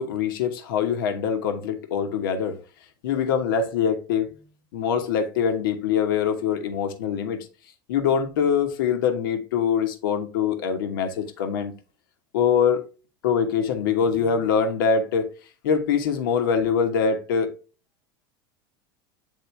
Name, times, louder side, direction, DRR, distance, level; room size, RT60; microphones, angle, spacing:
voice 1, 0.0-2.6 3.0-4.4 4.7-7.5 7.9-11.7 12.3-12.8 13.2-15.3 15.6-17.5, left 7 dB, 85° left, 1.2 m, -23 dB
8.7 x 3.7 x 3.3 m
supercardioid pair, 115°, 11 cm